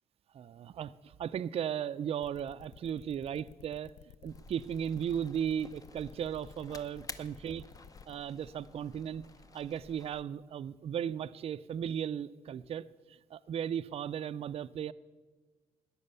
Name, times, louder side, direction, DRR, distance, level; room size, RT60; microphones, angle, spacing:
voice 1, 0.3-3.9 4.2-7.6 8.1-9.2 9.5-14.9, right 9 dB, 50° right, 13 dB, 0.4 m, -36 dB
sound 1, 2.2-8.2, left 10 dB, 75° left, 0.4 m, -55 dB
sound 2, 4.3-10.2, left 3 dB, 25° left, 0.7 m, -52 dB
14.0 x 9.8 x 6.9 m, 1.3 s
cardioid pair, 105°, 13 cm